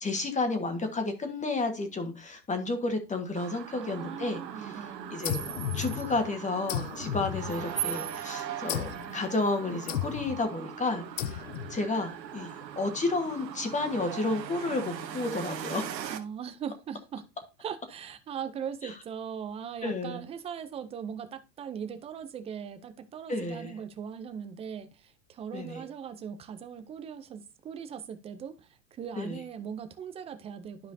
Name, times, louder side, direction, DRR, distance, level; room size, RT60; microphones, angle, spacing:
voice 1, 0.0-4.4 5.1-5.4 5.7-11.4 11.7-15.8 19.8-20.2 23.3-23.7 25.5-25.8 29.2-29.4, left 2 dB, 15° left, 1.4 m, -31 dB
sound 1, 3.4-16.2, right 9 dB, 85° right, 1.1 m, -39 dB
voice 2, 3.8-5.2 16.1-17.3 17.6-30.9, right 7 dB, 15° right, 0.4 m, -40 dB
sound 2, 5.2-6.3 6.7-8.0 8.7-9.1 9.9-10.4 11.2-11.8, left 12 dB, 60° left, 0.7 m, -34 dB
12.0 x 4.9 x 2.7 m
hypercardioid pair, 105°, 49 cm